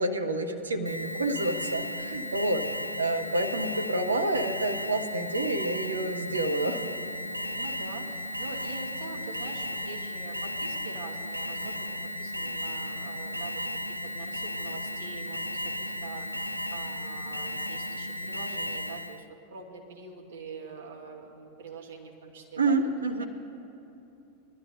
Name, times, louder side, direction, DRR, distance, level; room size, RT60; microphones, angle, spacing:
voice 1, 0.0-2.6 3.0-6.8 22.6-23.2, right 2 dB, 75° right, 6 dB, 0.8 m, -28 dB
Alarm, 0.8-19.2, left 1 dB, 90° left, 0.3 m, -35 dB
voice 2, 7.5-13.6 14.0-22.8 23.2-23.3, right 4 dB, 60° right, 0 dB, 1.7 m, -44 dB
20.5 x 12.0 x 2.6 m, 2.9 s
figure-of-eight pair, 90°, 0 cm